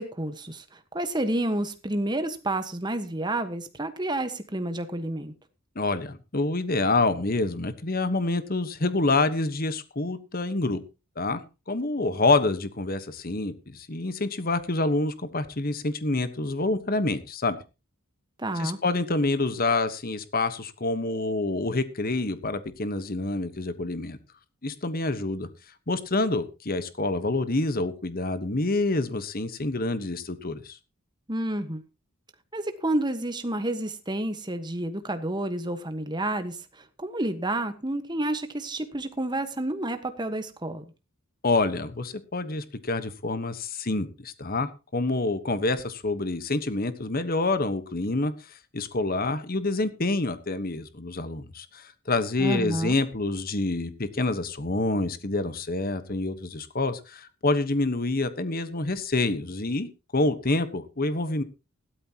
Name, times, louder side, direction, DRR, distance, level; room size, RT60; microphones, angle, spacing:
voice 1, 0.0-5.3 18.4-18.8 31.3-31.8 32.5-40.8 52.4-53.0, right 1 dB, 20° right, 9 dB, 1.4 m, -30 dB
voice 2, 5.7-10.8 11.2-11.4 11.7-17.6 18.6-24.2 24.6-25.5 25.9-30.8 41.4-48.3 48.7-59.9 60.1-61.4, left 2 dB, 40° left, 12 dB, 1.2 m, -27 dB
16.0 x 12.5 x 3.0 m, 0.29 s
head